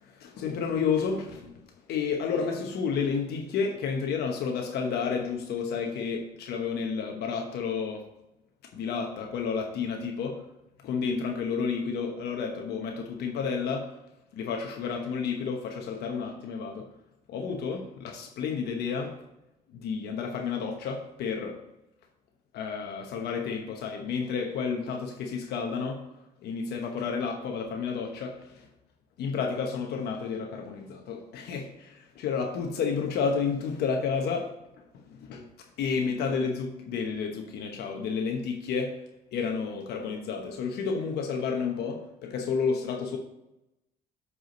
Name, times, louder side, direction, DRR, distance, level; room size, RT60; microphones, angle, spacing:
voice 1, 0.1-1.5 1.9-8.0 8.7-10.4 10.8-13.9 14.3-16.9 17.3-19.2 19.7-21.6 22.5-26.0 26.4-28.7 29.2-34.5 34.9-35.4 35.8-39.0 39.3-43.2, left 5 dB, 75° left, 3 dB, 1.0 m, -31 dB
7.9 x 4.8 x 5.1 m, 0.90 s
cardioid pair, 110°, 17 cm